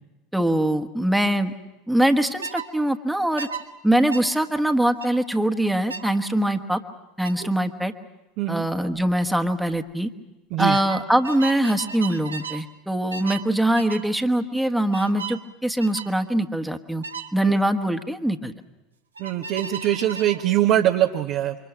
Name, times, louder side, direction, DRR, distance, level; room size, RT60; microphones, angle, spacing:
voice 1, 0.3-1.5 1.9-3.5 3.8-6.8 7.2-7.9 8.5-10.1 10.6-17.0 17.3-18.5, right 1 dB, 5° right, 6 dB, 1.4 m, -23 dB
sound 1, 2.4-2.7 3.4-3.6 4.1-4.3 5.0-5.2 5.9-6.1 7.2-7.4 8.9-9.1 9.4-9.8 10.7-12.6 13.1-13.5 13.8-14.1 14.9-15.4 15.8-16.1 17.0-17.3 19.2-20.4, right 5 dB, 90° right, 1.2 m, -35 dB
voice 2, 19.2-21.5, right 12 dB, 60° right, 3 dB, 1.1 m, -22 dB
27.5 x 24.0 x 6.1 m, 1.0 s
hypercardioid pair, 75°, 0 cm